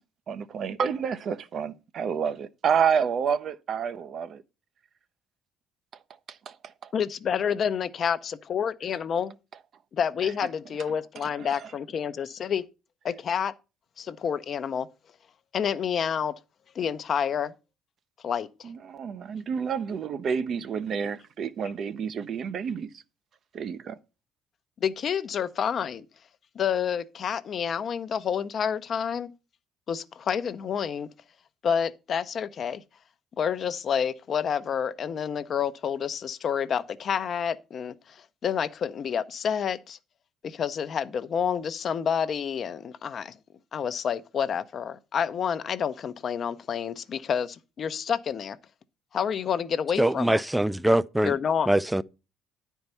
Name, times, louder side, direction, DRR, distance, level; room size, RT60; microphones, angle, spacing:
voice 1, 0.3-4.4 6.3-6.9 10.2-10.3 11.2-11.7 18.6-23.0 23.5-24.0, right 7 dB, 55° right, 0.6 m, -29 dB
voice 2, 6.9-9.3 9.9-12.6 13.0-13.5 14.0-14.9 15.5-16.3 16.7-17.5 18.2-18.7 24.8-26.1 26.6-29.3 29.9-31.1 31.6-32.8 33.4-40.0 40.4-43.4 43.7-48.6 49.1-50.4 51.2-51.7, left 7 dB, 50° left, 0.6 m, -29 dB
voice 3, 50.0-51.4 51.7-52.0, right 1 dB, 5° right, 0.4 m, -23 dB
9.5 x 4.6 x 5.5 m
supercardioid pair, 80°, 0 cm